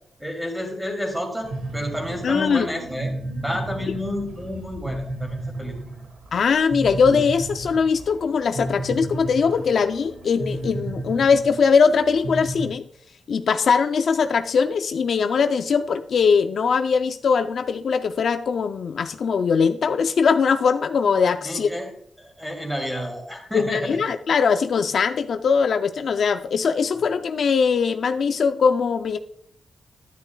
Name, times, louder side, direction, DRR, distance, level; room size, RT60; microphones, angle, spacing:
voice 1, 0.2-3.1 3.4-5.8 21.4-21.9 22.2-24.0, left 1 dB, 5° right, 2 dB, 2.4 m, -30 dB
sound 1, 1.4-12.7, right 2 dB, 90° right, 1.8 m, -33 dB
voice 2, 2.2-2.7 6.3-12.8 13.3-21.7 23.5-29.2, left 5 dB, 65° left, 9 dB, 0.4 m, -21 dB
10.5 x 9.8 x 2.2 m, 0.64 s
cardioid pair, 105°, 0 cm